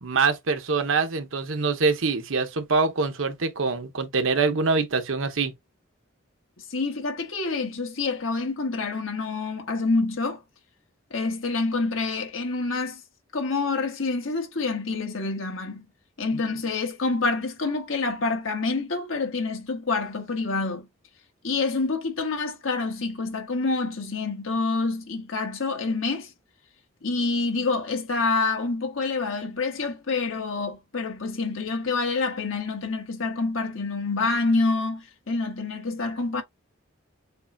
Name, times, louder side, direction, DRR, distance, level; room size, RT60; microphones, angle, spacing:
voice 1, 0.0-5.5, right 4 dB, 80° right, 0.9 m, -24 dB
voice 2, 6.6-10.4 11.1-13.0 13.3-15.8 16.2-20.9 21.4-26.3 27.0-36.4, left 3 dB, 85° left, 1.4 m, -27 dB
6.7 x 2.3 x 2.6 m
head